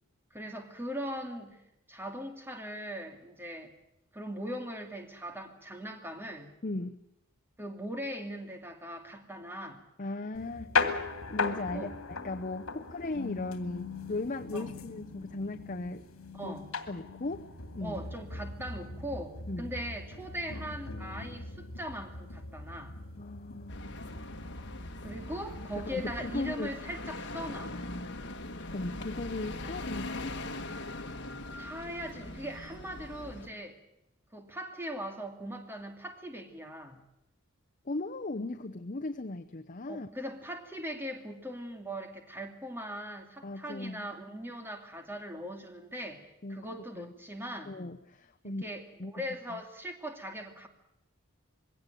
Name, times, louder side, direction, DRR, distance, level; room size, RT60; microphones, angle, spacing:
voice 1, 0.3-1.6 1.9-3.7 4.1-6.5 7.6-9.8 11.7-11.9 12.7-12.8 14.5-14.7 16.3-16.7 17.8-23.0 25.0-27.7 31.6-33.8 34.3-37.0 39.9-47.7 48.4-50.7, equal, 10° right, 5 dB, 2.5 m, -40 dB
voice 2, 6.6-7.0 10.0-10.8 11.3-16.0 16.4-16.5 16.9-17.5 17.7-18.0 19.5-19.7 23.2-23.9 25.9-26.7 28.6-30.4 37.8-40.1 43.4-44.1 46.4-47.1 47.7-48.6 49.0-49.1, left 2 dB, 35° left, 5 dB, 0.8 m, -37 dB
sound 1, 10.3-26.5, left 4 dB, 75° left, 2.5 m, -39 dB
sound 2, 23.7-33.5, left 2 dB, 55° left, 1.8 m, -41 dB
22.5 x 17.5 x 9.3 m, 0.87 s
head